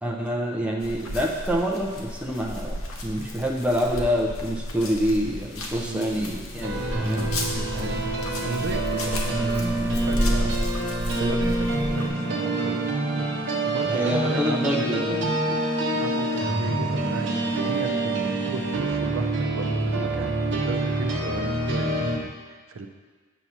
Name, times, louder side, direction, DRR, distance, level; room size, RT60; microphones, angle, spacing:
voice 1, 0.0-7.3 13.9-15.6 15.9-16.0, equal, 5° right, -2 dB, 0.5 m, -27 dB
sound 1, 0.8-12.1, equal, 85° left, 0.9 m, -31 dB
voice 2, 5.8-6.2 7.7-8.1 8.4-11.7 11.9-12.9 13.6-15.3 16.0-22.9, right 3 dB, 75° right, 5 dB, 0.5 m, -34 dB
sound 2, 6.6-22.2, right 2 dB, 55° right, 0.9 m, -26 dB
8.0 x 2.9 x 6.0 m, 1.4 s
head